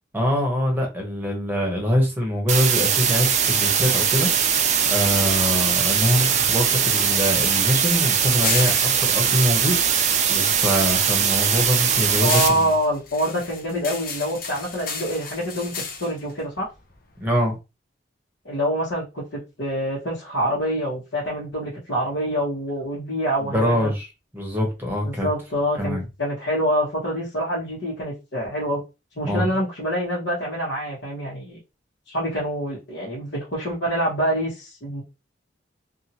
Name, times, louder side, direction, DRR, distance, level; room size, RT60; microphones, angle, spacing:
voice 1, 0.1-4.3 4.9-12.7 17.2-17.6 23.4-24.1 24.3-25.3 25.8-26.0 29.2-29.5, equal, 10° right, 0.9 m, -24 dB
sound 1, 2.5-12.5, right 7 dB, 40° right, 0.4 m, -21 dB
sound 2, 6.4-10.6 10.9-17.3, left 5 dB, 50° left, 0.6 m, -34 dB
voice 2, 12.2-15.7 16.0-16.7 18.4-23.9 25.0-28.8 29.2-31.6 32.1-35.0, equal, 80° left, 1.2 m, -26 dB
2.7 x 2.5 x 2.8 m
head